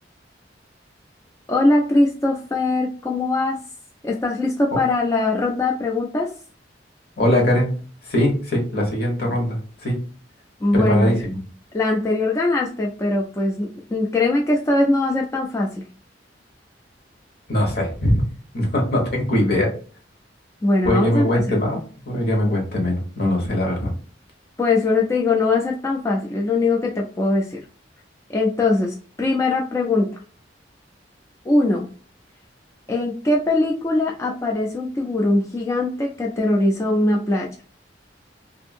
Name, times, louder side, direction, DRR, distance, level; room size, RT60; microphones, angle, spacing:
voice 1, 1.5-3.6 4.0-6.3 10.6-11.3 11.7-15.8 20.6-21.3 24.6-27.6 28.3-30.1 31.4-31.9 32.9-37.5, left 2 dB, 15° left, -1 dB, 0.3 m, -21 dB
voice 2, 7.2-7.7 8.1-10.0 10.7-11.4 17.5-18.2 18.5-19.7 20.8-23.9, left 1 dB, 60° left, 0 dB, 1.1 m, -21 dB
2.6 x 2.5 x 2.5 m, 0.40 s
head